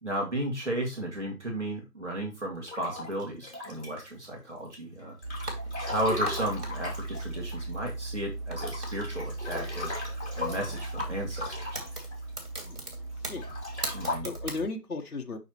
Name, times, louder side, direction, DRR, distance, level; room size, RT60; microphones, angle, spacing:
voice 1, 0.0-5.2 5.9-9.9 10.3-11.8 13.9-14.3, right 1 dB, 45° right, 2.1 m, -34 dB
Breathing / Bathtub (filling or washing) / Splash splatter, 2.7-4.2 4.7-7.9 8.2-8.3 8.5-12.7 13.3-14.2, left 2 dB, 40° left, 2.8 m, -37 dB
sound 1, 5.2-14.7, right 2 dB, 65° right, 2.6 m, -37 dB
voice 2, 12.6-13.5 14.2-15.4, left 3 dB, 60° left, 1.1 m, -36 dB
6.3 x 6.0 x 3.0 m
figure-of-eight pair, 175°, 49 cm